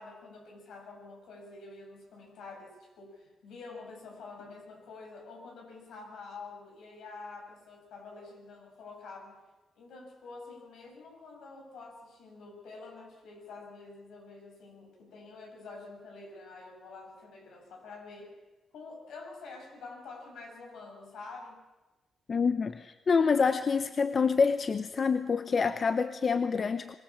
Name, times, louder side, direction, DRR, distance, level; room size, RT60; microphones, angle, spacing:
voice 1, 0.0-9.4 9.8-18.3 18.7-21.6, left 3 dB, 85° left, 1 dB, 6.9 m, -47 dB
voice 2, 22.3-26.9, left 5 dB, 45° left, 11 dB, 0.9 m, -27 dB
24.0 x 19.5 x 7.4 m, 1.1 s
cardioid pair, 90°, 0 cm